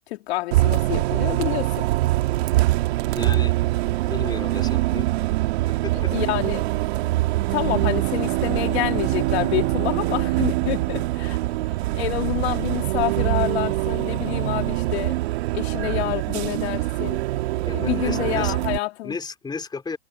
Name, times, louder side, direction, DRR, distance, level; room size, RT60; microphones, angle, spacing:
voice 1, 0.1-1.9 5.9-6.6 7.5-11.4 11.9-15.2 15.5-17.2 17.7-19.2, left 17 dB, 65° left, 3.5 m, -28 dB
Bus, 0.5-18.8, right 17 dB, 65° right, 1.9 m, -24 dB
voice 2, 3.1-3.5 4.1-5.1 5.7-6.1 10.3-10.4 17.7-18.5 19.0-20.0, left 4 dB, 10° left, 3.6 m, -33 dB
Bowed string instrument, 7.4-12.0, right 20 dB, 40° right, 1.3 m, -29 dB
hypercardioid pair, 120°, 35 cm